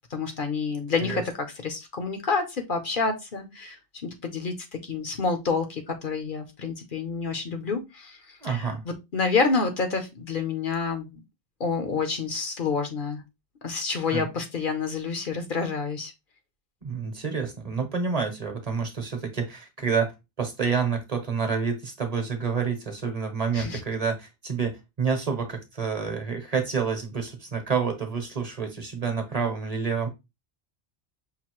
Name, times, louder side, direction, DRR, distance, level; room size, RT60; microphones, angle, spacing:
voice 1, 0.1-1.2 1.6-3.8 4.0-8.2 8.5-11.2 11.6-13.2 13.6-16.1 23.5-23.8, left 4 dB, 55° left, 0.9 m, -28 dB
voice 2, 8.4-8.8 14.1-14.3 16.8-30.1, right 5 dB, 40° right, 1.0 m, -28 dB
5.7 x 2.6 x 3.0 m
omnidirectional pair, 1.1 m